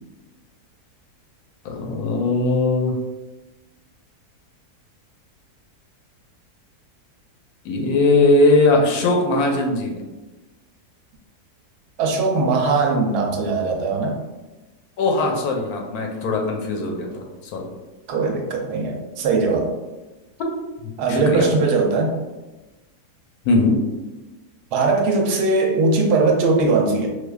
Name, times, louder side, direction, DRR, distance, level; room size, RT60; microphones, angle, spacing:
voice 1, 1.6-3.0 7.6-10.0 15.0-17.7 20.8-21.5 23.4-23.8, left 2 dB, 75° left, 1 dB, 1.0 m, -20 dB
voice 2, 12.0-14.2 18.1-19.7 21.0-22.2 24.7-27.1, right 3 dB, 85° right, 2 dB, 1.1 m, -20 dB
4.5 x 2.3 x 2.2 m, 1.1 s
omnidirectional pair, 1.7 m